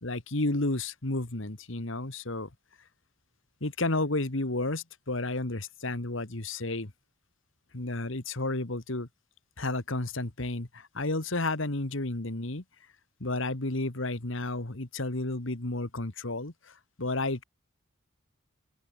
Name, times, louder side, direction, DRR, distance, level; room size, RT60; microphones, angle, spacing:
voice 1, 0.0-2.5 3.6-6.9 7.7-9.1 9.6-12.6 13.2-17.4, left 2 dB, 70° left, 2.0 m, -32 dB
open air
head